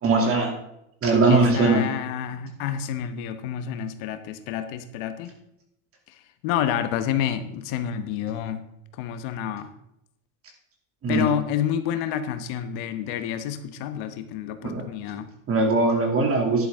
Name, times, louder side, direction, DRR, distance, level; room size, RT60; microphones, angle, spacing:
voice 1, 0.0-0.5 1.0-1.8 11.0-11.3 14.6-14.8 15.5-16.7, right 3 dB, 30° right, 1 dB, 2.6 m, -20 dB
voice 2, 1.3-5.3 6.1-8.6 9.0-9.7 11.1-15.3, left 9 dB, 65° left, 9 dB, 1.2 m, -29 dB
11.0 x 11.0 x 3.6 m, 0.82 s
supercardioid pair, 140°, 44 cm